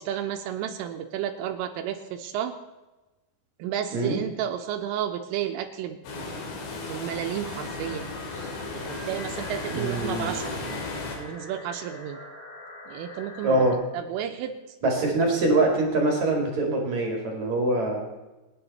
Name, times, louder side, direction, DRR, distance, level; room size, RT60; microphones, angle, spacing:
voice 1, 0.0-2.6 3.6-6.0 6.9-10.6 11.1-12.2 12.9-13.6 13.9-14.6 14.8-15.0, right 10 dB, 80° right, 6 dB, 3.4 m, -32 dB
sound 1, 6.0-11.2, left 3 dB, 80° left, 5.5 m, -35 dB
sound 2, 7.4-13.7, left 2 dB, 15° left, 2.6 m, -43 dB
voice 2, 9.7-10.4 13.4-13.8 14.8-18.1, right 2 dB, 45° right, 1 dB, 2.7 m, -24 dB
28.0 x 9.6 x 4.2 m, 1.1 s
omnidirectional pair, 5.9 m